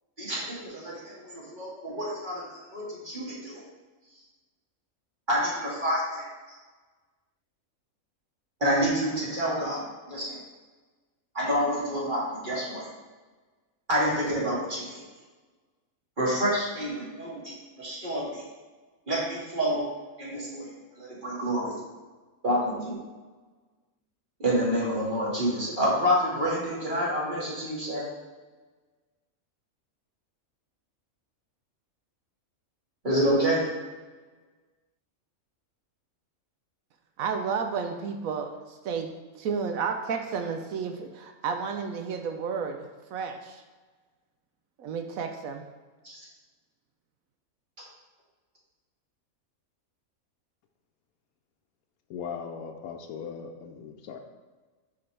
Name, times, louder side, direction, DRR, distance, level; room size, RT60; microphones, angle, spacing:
voice 1, 0.2-3.6 5.3-6.6 8.6-10.4 11.3-12.9 13.9-15.0 16.2-18.4 19.1-19.8 20.2-21.8 22.4-23.0 24.4-28.1 33.0-33.7 46.0-46.3, equal, 35° right, -7 dB, 2.0 m, -28 dB
voice 2, 37.2-39.1 39.4-42.8 43.1-43.6 44.8-45.6, right 6 dB, 75° right, 5 dB, 1.0 m, -31 dB
voice 3, 52.1-54.2, left 6 dB, 90° left, 4 dB, 1.1 m, -38 dB
9.4 x 3.8 x 3.3 m, 1.3 s
omnidirectional pair, 1.5 m